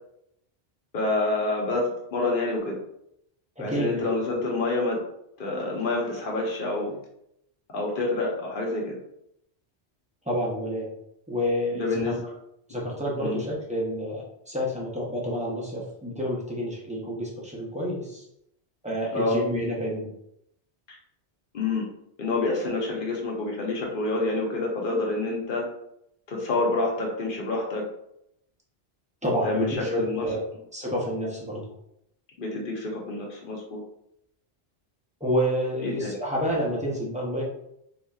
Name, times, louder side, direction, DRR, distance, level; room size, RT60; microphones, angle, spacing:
voice 1, 0.9-2.8 3.6-5.0 5.4-7.0 7.7-9.0 11.7-12.2 13.2-13.4 19.1-19.4 20.9-21.0 21.5-21.9 22.2-25.7 26.3-27.8 29.4-30.3 32.4-33.8 35.8-36.1, left 2 dB, 55° left, -1 dB, 1.0 m, -27 dB
voice 2, 3.6-4.0 10.3-10.9 11.3-12.1 12.7-18.2 18.8-20.1 29.2-31.7 35.2-37.4, equal, 10° right, -5 dB, 0.7 m, -29 dB
4.0 x 2.8 x 2.4 m, 0.76 s
omnidirectional pair, 1.1 m